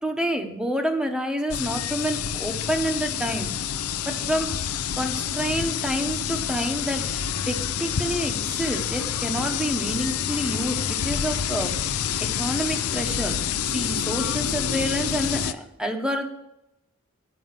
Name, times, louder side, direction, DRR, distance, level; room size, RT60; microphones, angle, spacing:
voice 1, 0.0-3.5 4.1-4.5 5.0-11.7 12.4-13.4 13.7-16.3, equal, 5° right, 5 dB, 0.9 m, -28 dB
sound 1, 1.5-15.5, left 8 dB, 85° left, 0.6 m, -28 dB
9.4 x 5.3 x 7.5 m, 0.85 s
head